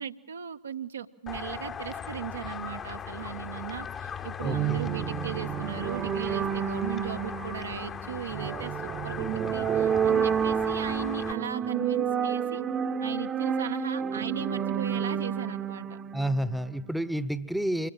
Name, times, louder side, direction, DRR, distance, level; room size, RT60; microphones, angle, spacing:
voice 1, 0.0-12.6 13.0-16.0, right 9 dB, 70° right, 8 dB, 0.9 m, -37 dB
sound 1, 1.3-11.3, left 7 dB, 25° left, 1.1 m, -38 dB
voice 2, 4.4-4.9 16.1-17.9, right 1 dB, ahead, 16 dB, 1.0 m, -30 dB
sound 2, 4.4-16.9, right 7 dB, 25° right, 0.9 m, -30 dB
25.5 x 21.0 x 7.5 m, 0.80 s
figure-of-eight pair, 90°, 0 cm